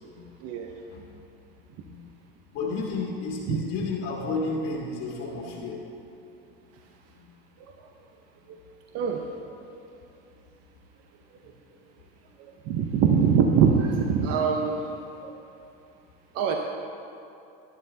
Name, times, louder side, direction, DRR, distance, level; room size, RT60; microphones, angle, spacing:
voice 1, 0.4-0.7 3.5-3.6 7.6-7.7 8.5-8.6 8.9-9.2 12.4-14.8 15.2-15.3 16.3-16.6, right 6 dB, 55° right, 3 dB, 0.8 m, -23 dB
voice 2, 2.5-5.8 7.2-7.3 8.9-9.0, left 3 dB, 55° left, -3 dB, 1.8 m, -32 dB
11.5 x 11.0 x 2.8 m, 2.8 s
supercardioid pair, 95°, 29 cm